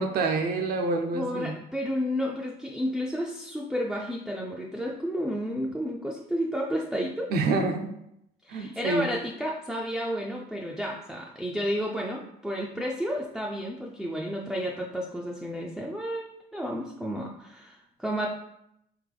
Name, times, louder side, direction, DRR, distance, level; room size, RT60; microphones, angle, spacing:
voice 1, 0.0-1.5 7.3-8.0 8.5-9.1, right 3 dB, 65° right, 5 dB, 0.6 m, -27 dB
voice 2, 1.1-7.3 8.4-18.3, equal, ahead, -2 dB, 0.4 m, -31 dB
3.7 x 3.0 x 3.3 m, 0.78 s
cardioid pair, 110°, 17 cm